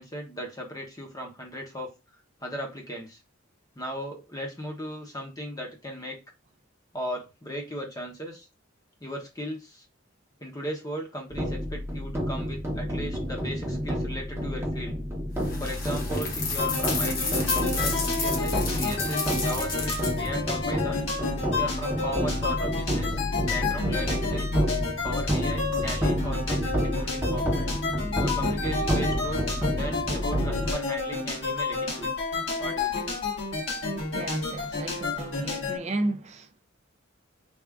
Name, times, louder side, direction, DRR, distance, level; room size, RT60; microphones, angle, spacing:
voice 1, 0.0-1.9 2.4-3.2 3.8-6.2 6.9-8.5 9.0-9.8 10.4-15.0 15.6-17.4 17.7-21.0 21.5-23.2 23.5-24.5 25.0-27.7 28.2-29.5 29.8-32.1 32.6-33.1, equal, 15° left, 0.8 m, -37 dB
sound 1, 11.3-30.7, equal, 10° right, 0.8 m, -29 dB
sound 2, 15.4-20.3, left 4 dB, 45° left, 1.0 m, -32 dB
sound 3, 16.6-35.8, left 3 dB, 70° left, 1.6 m, -31 dB
voice 2, 34.1-36.5, right 2 dB, 30° right, 0.4 m, -33 dB
3.4 x 2.5 x 3.5 m
head